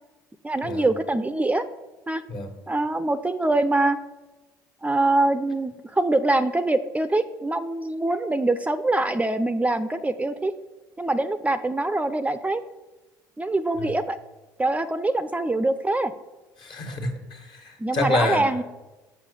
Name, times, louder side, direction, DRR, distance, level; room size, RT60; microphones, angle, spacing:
voice 1, 0.4-1.6 2.1-2.2 2.7-4.0 4.8-10.5 11.0-12.6 13.4-14.2 14.6-16.1 17.8-18.6, right 2 dB, 15° right, 12 dB, 0.5 m, -24 dB
voice 2, 16.6-18.5, left 2 dB, 55° left, 4 dB, 1.6 m, -28 dB
6.9 x 5.6 x 6.8 m, 1.1 s
hypercardioid pair, 65°, 10 cm